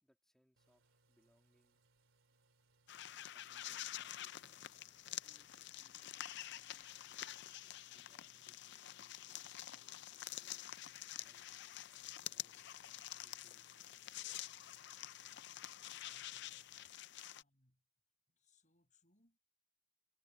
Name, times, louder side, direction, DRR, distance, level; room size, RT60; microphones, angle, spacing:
voice 1, 0.0-1.8 3.3-4.7 5.1-5.5 5.8-7.4 7.9-10.7 11.2-14.0, equal, 5° left, 2.9 m, -77 dB
sound 1, 0.6-17.0, right 3 dB, 85° right, 3.1 m, -76 dB
Ants (Riaza), 2.9-17.4, left 13 dB, 60° left, 0.5 m, -48 dB
voice 2, 15.8-16.7 17.2-17.8 18.3-19.4, left 3 dB, 40° left, 7.5 m, -75 dB
head